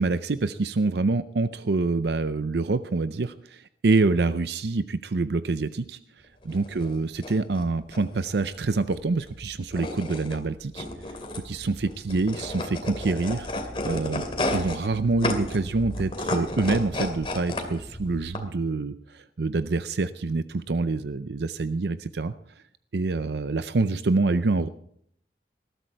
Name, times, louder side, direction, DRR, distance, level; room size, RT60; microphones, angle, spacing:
voice 1, 0.0-6.0 6.5-10.9 11.3-13.5 13.8-14.2 14.5-22.3 22.9-24.7, right 3 dB, 70° right, 12 dB, 0.5 m, -26 dB
sound 1, 6.4-18.4, left 1 dB, 30° left, 2.5 m, -33 dB
20.0 x 12.5 x 4.6 m, 0.67 s
head